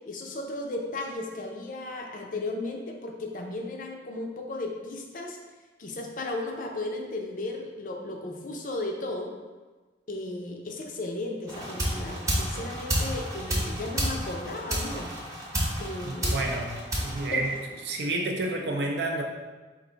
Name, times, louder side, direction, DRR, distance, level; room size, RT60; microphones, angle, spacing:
voice 1, 0.1-5.4 5.8-9.3 10.1-15.1 15.8-16.4 17.1-17.4, left 2 dB, 45° left, 2 dB, 0.5 m, -35 dB
sound 1, 11.5-18.0, equal, 15° right, 0.7 m, -31 dB
voice 2, 16.0-17.5 17.8-19.2, right 2 dB, 65° right, 1 dB, 0.5 m, -30 dB
4.5 x 2.5 x 3.9 m, 1.3 s
head